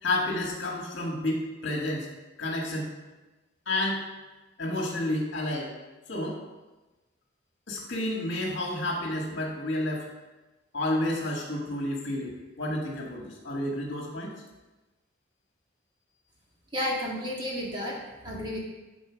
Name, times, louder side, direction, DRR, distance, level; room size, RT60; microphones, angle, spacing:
voice 1, 0.0-2.1 2.4-2.9 3.6-4.0 4.6-5.7 6.1-6.4 7.7-10.1 10.7-14.3, left 1 dB, 55° left, -1 dB, 1.5 m, -30 dB
voice 2, 16.7-18.6, left 1 dB, 25° right, -3 dB, 1.7 m, -32 dB
11.5 x 4.1 x 5.1 m, 1.1 s
head